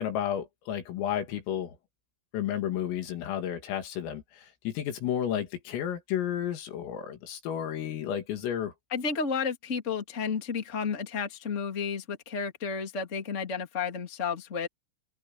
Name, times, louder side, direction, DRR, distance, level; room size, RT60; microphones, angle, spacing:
voice 1, 0.0-1.8 2.3-8.7, left 10 dB, 80° left, 5.2 m, -32 dB
voice 2, 8.9-14.7, left 5 dB, 20° left, 2.3 m, -32 dB
open air
omnidirectional pair, 6.0 m